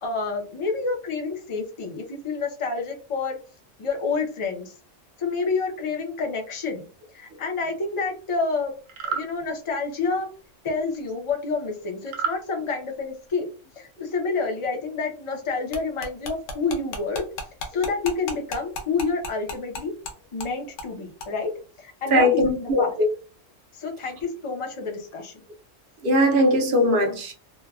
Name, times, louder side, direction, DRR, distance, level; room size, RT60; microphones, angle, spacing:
voice 1, 0.0-3.4 3.8-4.7 5.2-6.9 7.1-8.7 9.0-10.3 10.6-13.5 13.8-17.2 17.7-19.9 20.3-21.5 21.8-23.0 23.7-25.3, left 4 dB, 40° left, 0.5 m, -28 dB
sound 1, 8.9-9.3 12.1-12.4, right 6 dB, 75° right, 1.0 m, -28 dB
sound 2, 15.7-20.1 20.4-20.5 20.8-20.9 21.2-21.3, left 3 dB, 70° left, 1.0 m, -33 dB
voice 2, 22.1-23.1 26.0-27.3, left 1 dB, 55° right, 0.7 m, -20 dB
3.0 x 2.2 x 2.3 m
omnidirectional pair, 1.3 m